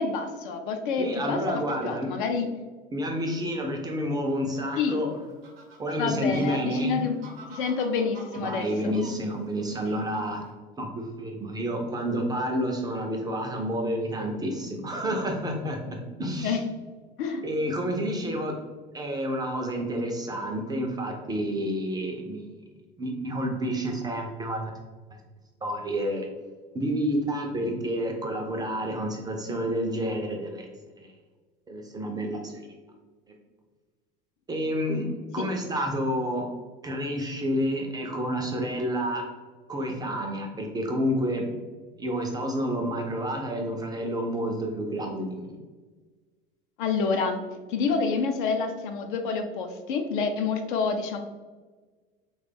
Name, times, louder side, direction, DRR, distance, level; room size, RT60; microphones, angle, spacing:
voice 1, 0.0-2.5 4.8-5.0 6.0-7.1 7.5-8.9 16.4-16.6 17.2-17.5 35.4-35.5 46.8-47.4 47.7-51.2, left 5 dB, 60° left, 6 dB, 0.5 m, -28 dB
voice 2, 1.0-2.1 2.9-5.1 5.8-7.0 8.4-10.4 10.8-15.8 16.2-16.6 17.4-18.5 18.9-22.5 23.0-24.7 25.6-26.3 26.7-30.7 31.0-31.1 31.7-32.6 34.5-36.5 36.8-39.2 39.7-41.5 42.0-45.5, equal, 15° right, 2 dB, 0.4 m, -29 dB
Fowl, 4.4-10.5, right 3 dB, 75° right, 0.7 m, -50 dB
3.2 x 2.2 x 3.3 m, 1.4 s
figure-of-eight pair, 75°, 29 cm